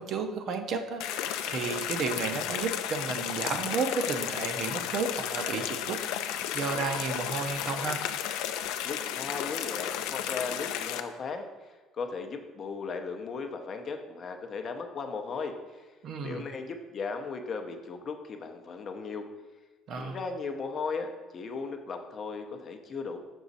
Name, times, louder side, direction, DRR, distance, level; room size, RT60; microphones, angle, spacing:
voice 1, 0.0-6.0 6.3-8.0 16.0-16.5 19.9-20.2, right 5 dB, 45° right, 6 dB, 0.6 m, -32 dB
sound 1, 1.0-11.0, left 10 dB, 85° left, 0.4 m, -33 dB
voice 2, 8.8-15.9 16.2-19.3 20.0-23.2, left 4 dB, 30° left, 5 dB, 0.6 m, -37 dB
6.2 x 5.9 x 4.0 m, 1.3 s
cardioid pair, 170°, 0 cm